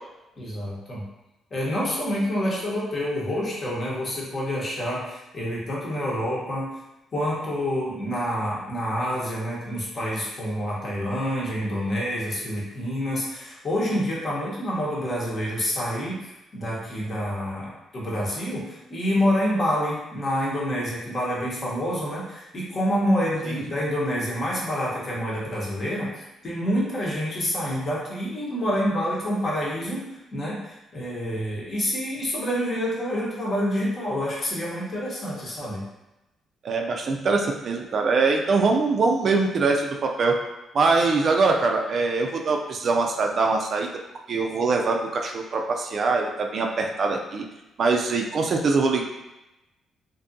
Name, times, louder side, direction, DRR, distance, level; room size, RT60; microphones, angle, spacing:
voice 1, 0.4-1.0 1.5-6.7 7.1-30.0 30.3-35.8, equal, 45° left, -5 dB, 1.0 m, -27 dB
voice 2, 36.6-40.4 40.7-43.9 44.3-47.4 47.8-49.0, right 4 dB, 55° right, 2 dB, 0.3 m, -23 dB
2.6 x 2.3 x 2.5 m, 0.97 s
cardioid pair, 90°, 0 cm